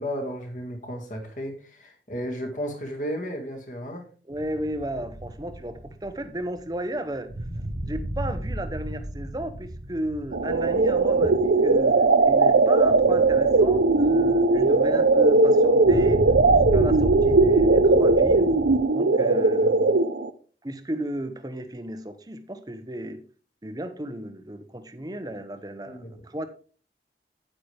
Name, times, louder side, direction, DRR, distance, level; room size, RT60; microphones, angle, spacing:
voice 1, 0.0-4.1 11.2-11.3 19.2-19.7 25.9-26.2, equal, 45° left, 3 dB, 2.1 m, -34 dB
voice 2, 4.3-7.3 7.8-16.2 16.5-18.5 18.9-20.1 20.6-23.2 23.6-26.5, right 1 dB, 20° right, 9 dB, 0.9 m, -34 dB
sound 1, 4.3-18.8, right 1 dB, 55° right, 1.0 m, -34 dB
sound 2, 10.3-20.3, right 3 dB, 80° right, 0.7 m, -19 dB
9.4 x 8.8 x 3.4 m, 0.40 s
head